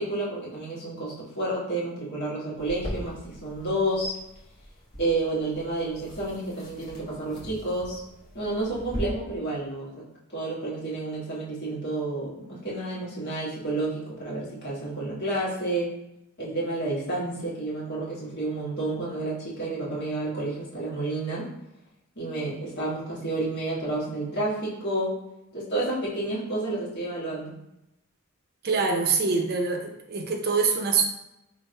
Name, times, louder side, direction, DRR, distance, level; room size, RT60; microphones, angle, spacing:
voice 1, 0.0-4.1 5.0-8.0 8.3-10.0 10.3-15.9 16.4-21.5 22.1-25.2 25.5-27.5, right 2 dB, 50° left, -6 dB, 1.4 m, -30 dB
sound 1, 2.6-9.0, equal, 35° left, 1.1 m, -42 dB
voice 2, 28.6-31.1, right 4 dB, 45° right, 3 dB, 0.6 m, -24 dB
3.4 x 2.5 x 4.3 m, 0.87 s
head